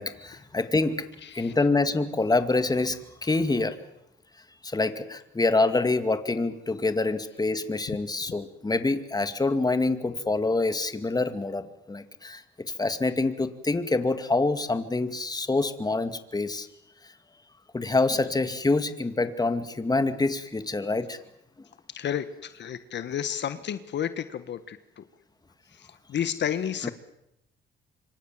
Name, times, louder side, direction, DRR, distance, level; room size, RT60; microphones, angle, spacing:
voice 1, 0.0-1.1 1.3-3.8 4.6-12.4 12.8-16.7 17.7-21.2 26.8-26.9, left 3 dB, 20° left, 10 dB, 2.4 m, -26 dB
voice 2, 1.2-1.5 7.9-8.0 21.9-25.0 25.7-26.9, left 9 dB, 60° left, 12 dB, 1.5 m, -32 dB
27.0 x 25.0 x 7.6 m, 0.82 s
cardioid pair, 90°, 20 cm